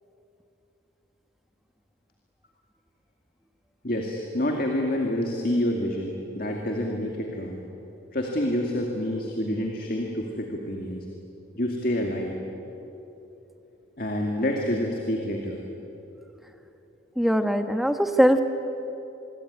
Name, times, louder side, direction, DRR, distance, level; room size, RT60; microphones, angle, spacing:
voice 1, 3.8-7.6 8.1-11.1 11.5-12.4 14.0-15.6, left 1 dB, 45° left, 1 dB, 2.4 m, -28 dB
voice 2, 17.2-18.4, equal, ahead, 6 dB, 1.2 m, -21 dB
26.5 x 22.0 x 9.7 m, 3.0 s
head